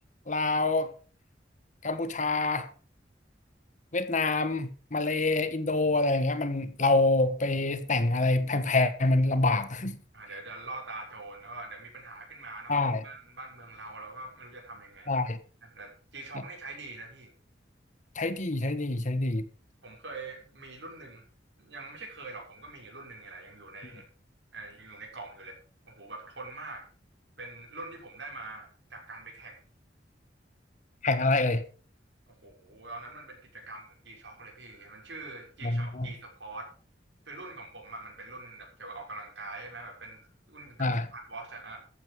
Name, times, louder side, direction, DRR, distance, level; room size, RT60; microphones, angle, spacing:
voice 1, 0.3-0.9 1.8-2.7 3.9-10.0 12.7-13.0 15.1-15.4 18.1-19.4 31.0-31.6 35.6-36.1 40.8-41.1, left 2 dB, 45° left, 1.5 m, -26 dB
voice 2, 10.1-15.2 15.6-17.3 19.8-21.2 21.6-24.0 24.5-25.6 25.8-26.9 27.4-29.6 32.3-36.7 37.2-40.2 40.5-41.8, right 2 dB, 90° right, 6.5 m, -44 dB
14.0 x 9.4 x 5.4 m
head